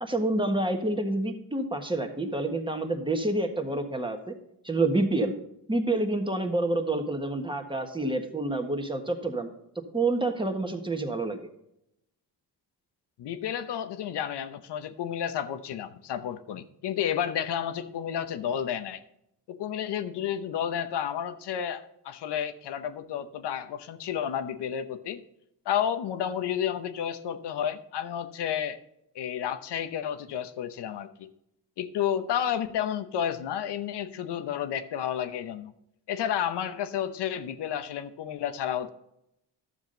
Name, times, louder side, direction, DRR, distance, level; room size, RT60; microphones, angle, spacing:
voice 1, 0.0-4.3 4.6-5.3 5.7-9.5 9.9-11.4, right 2 dB, 10° right, 5 dB, 1.4 m, -28 dB
voice 2, 13.2-19.0 19.5-25.2 25.7-28.8 29.1-31.3 31.8-35.7 36.1-38.9, left 9 dB, 80° left, 11 dB, 0.9 m, -31 dB
12.0 x 7.2 x 3.9 m, 0.80 s
cardioid pair, 95°, 41 cm